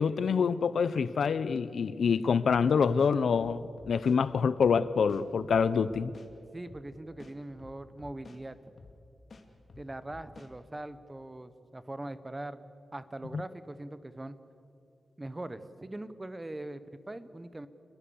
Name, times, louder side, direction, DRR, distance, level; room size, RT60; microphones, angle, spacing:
voice 1, 0.0-6.1 13.3-13.4, left 6 dB, 70° left, 0.6 m, -26 dB
sound 1, 3.0-4.2 4.6-4.7 5.1-6.3 6.7-6.8 7.2-8.4 8.8-9.0 9.3-10.5, left 3 dB, 40° left, 2.5 m, -51 dB
voice 2, 6.5-8.6 9.8-14.4 15.2-17.7, right 1 dB, 15° right, 1.0 m, -41 dB
28.5 x 21.5 x 7.1 m
wide cardioid pair, 155°, 0 cm